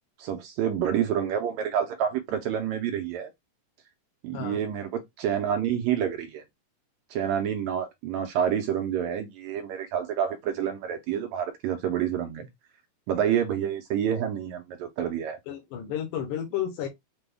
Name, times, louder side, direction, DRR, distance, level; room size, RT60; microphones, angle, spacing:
voice 1, 0.2-3.3 4.2-6.4 7.1-12.5 13.1-15.4, right 9 dB, 80° right, 1.7 m, -28 dB
voice 2, 15.5-16.9, left 10 dB, 80° left, 2.4 m, -32 dB
6.0 x 2.2 x 3.4 m
omnidirectional pair, 3.6 m